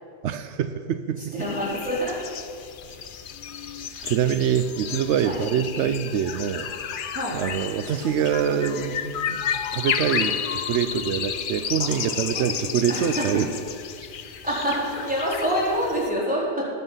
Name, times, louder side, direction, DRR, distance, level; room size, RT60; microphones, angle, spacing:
voice 1, 0.2-1.3 2.9-3.0 3.8-6.7 7.3-9.4 9.7-13.5, right 8 dB, 85° right, 10 dB, 0.9 m, -25 dB
voice 2, 1.2-2.3 3.9-4.1 5.2-5.4 7.1-7.4 11.8-12.5 12.9-13.4 14.2-16.6, equal, 5° right, -7 dB, 3.9 m, -27 dB
sound 1, 1.4-16.1, left 8 dB, 55° left, 0.7 m, -32 dB
19.5 x 7.4 x 5.6 m, 2.4 s
omnidirectional pair, 1.2 m